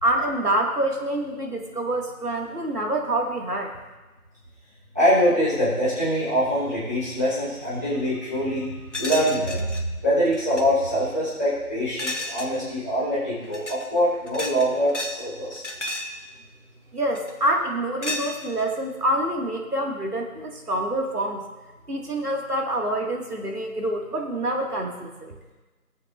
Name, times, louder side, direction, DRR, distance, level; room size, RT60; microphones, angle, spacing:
voice 1, 0.0-3.7 16.9-21.4 21.9-25.3, right 1 dB, 80° right, 0 dB, 2.2 m, -26 dB
voice 2, 4.9-15.7, equal, 10° right, -15 dB, 2.4 m, -24 dB
sound 1, 8.9-9.8 10.3-10.6 12.0-12.6 13.4-13.9 14.3-15.2 15.5-16.2 17.1-17.5 18.0-18.7, left 1 dB, 50° left, 1.0 m, -32 dB
19.5 x 7.8 x 2.6 m, 1.2 s
figure-of-eight pair, 175°, 45 cm